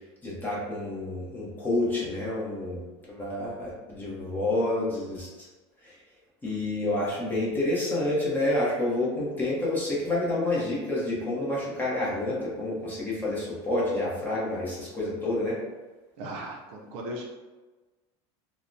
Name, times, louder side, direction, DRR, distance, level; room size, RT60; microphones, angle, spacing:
voice 1, 0.2-2.8 3.1-5.5 5.8-6.0 6.4-15.6, left 2 dB, 15° left, -6 dB, 0.7 m, -29 dB
voice 2, 16.2-17.2, right 1 dB, 50° right, -1 dB, 0.5 m, -37 dB
3.2 x 2.0 x 2.6 m, 1.2 s
cardioid pair, 170°, 14 cm